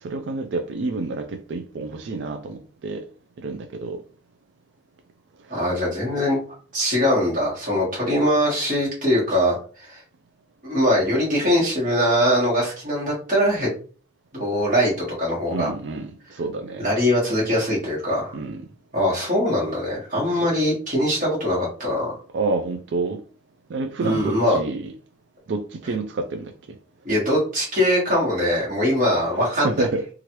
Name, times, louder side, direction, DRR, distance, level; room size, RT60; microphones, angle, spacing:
voice 1, 0.0-3.1 3.4-4.0 5.5-5.7 15.5-16.9 18.3-18.6 20.3-20.5 22.3-23.2 23.7-24.9 25.5-26.5 29.4-30.1, right 3 dB, 70° right, 0.4 m, -28 dB
voice 2, 5.5-6.4 6.7-10.0 10.6-13.7 14.3-14.9 15.2-15.7 16.8-18.4 18.9-22.1 24.0-24.6 27.0-29.8, equal, 45° right, 1.4 m, -22 dB
3.1 x 2.4 x 2.9 m
head